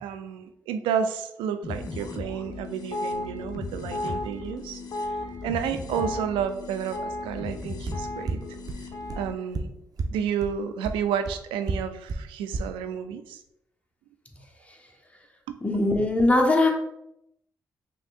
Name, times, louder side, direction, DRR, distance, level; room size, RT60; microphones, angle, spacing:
voice 1, 0.0-4.8 5.4-8.4 9.1-9.7 10.1-13.4 15.5-15.6, right 8 dB, 80° right, 9 dB, 0.4 m, -31 dB
sound 1, 1.6-9.3, left 2 dB, 50° left, 0.8 m, -34 dB
sound 2, 7.9-8.0 8.3-8.4 8.7-8.8 9.1-9.2 9.5-9.6 10.0-10.1 10.4-10.5 10.8-10.9 11.2-11.3 11.7-11.8 12.1-12.2 12.5-12.6, right 5 dB, 45° right, 0.7 m, -29 dB
voice 2, 15.6-16.7, left 2 dB, 15° left, 1 dB, 1.2 m, -21 dB
5.5 x 3.4 x 2.5 m, 0.81 s
hypercardioid pair, 40°, 9 cm